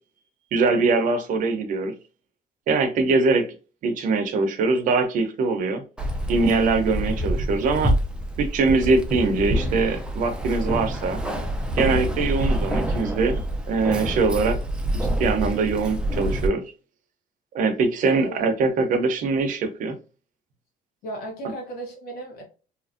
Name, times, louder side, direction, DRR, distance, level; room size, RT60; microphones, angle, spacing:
voice 1, 0.5-1.9 2.7-3.5 3.8-5.8 6.3-7.9 8.4-11.2 11.8-13.4 13.7-14.6 14.9-16.6 17.5-20.0, right 4 dB, 60° right, 8 dB, 0.7 m, -22 dB
Keys jangling, 6.0-16.5, right 1 dB, 5° right, 0.4 m, -26 dB
voice 2, 18.0-18.4 21.0-22.4, right 1 dB, 90° left, 1 dB, 1.1 m, -35 dB
2.8 x 2.5 x 2.5 m, 0.34 s
cardioid pair, 135°, 16 cm